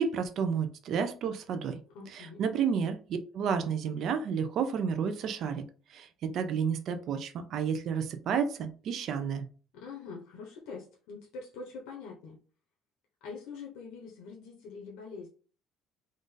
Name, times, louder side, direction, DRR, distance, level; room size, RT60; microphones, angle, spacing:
voice 1, 0.0-1.8 2.1-5.6 5.9-9.4, right 6 dB, 45° right, 7 dB, 0.5 m, -31 dB
voice 2, 1.9-2.4 9.7-12.4 13.2-15.3, left 4 dB, 85° left, -2 dB, 1.0 m, -44 dB
3.8 x 2.6 x 3.8 m, 0.39 s
cardioid pair, 170°, 0 cm